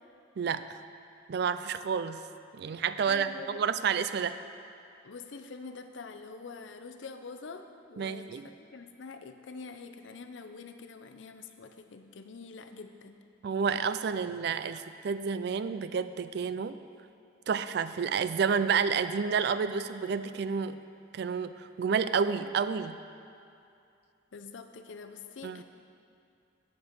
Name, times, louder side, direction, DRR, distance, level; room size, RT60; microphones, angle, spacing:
voice 1, 1.3-2.2 2.5-4.4 8.0-8.5 13.4-16.8 17.5-20.8 21.1-23.0 25.4-25.6, right 6 dB, 60° right, 12 dB, 0.3 m, -30 dB
voice 2, 3.1-3.6 5.0-13.2 24.3-25.6, left 4 dB, 75° left, 7 dB, 0.6 m, -45 dB
10.5 x 5.3 x 6.8 m, 2.6 s
head